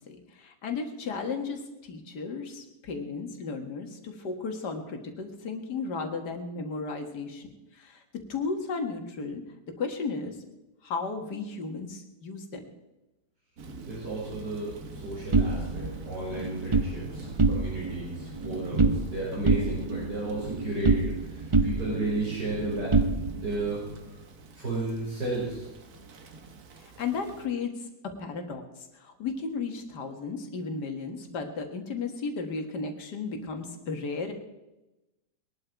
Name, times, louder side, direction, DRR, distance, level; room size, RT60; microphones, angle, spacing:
voice 1, 0.1-7.5 7.7-9.4 9.8-10.4 10.8-12.6 26.8-34.3, left 4 dB, 75° left, 4 dB, 2.3 m, -34 dB
Thunder / Rain, 13.6-27.5, right 3 dB, 65° right, 1.7 m, -43 dB
voice 2, 13.8-22.9 23.3-24.3 24.5-25.7, right 2 dB, 85° right, -8 dB, 5.9 m, -33 dB
sound 1, 15.3-16.9 17.3-18.0 18.2-19.1 19.5-21.3 21.5-23.6, right 3 dB, 45° right, 0.4 m, -26 dB
21.0 x 11.5 x 4.6 m, 0.99 s
omnidirectional pair, 1.8 m